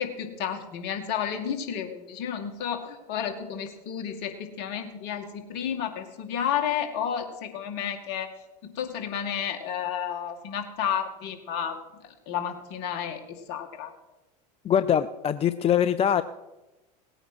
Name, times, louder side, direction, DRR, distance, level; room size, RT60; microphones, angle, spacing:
voice 1, 0.0-8.3 8.6-11.8 12.3-13.9, left 8 dB, 55° left, 6 dB, 2.3 m, -31 dB
voice 2, 14.6-16.2, left 9 dB, 30° left, 13 dB, 0.5 m, -23 dB
18.5 x 9.0 x 6.2 m, 1.0 s
hypercardioid pair, 85°, 21 cm